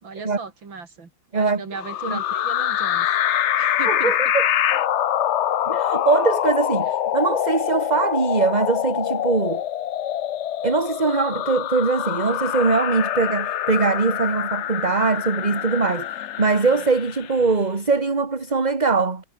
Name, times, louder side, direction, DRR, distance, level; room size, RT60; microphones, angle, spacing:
voice 1, 0.0-4.1, right 4 dB, 80° right, 4.1 m, -37 dB
voice 2, 1.3-1.6 2.1-2.2 3.9-4.5 5.7-9.6 10.6-19.2, right 4 dB, 25° right, 1.7 m, -22 dB
sound 1, 1.8-17.4, left 11 dB, 90° left, 0.6 m, -25 dB
omnidirectional pair, 2.1 m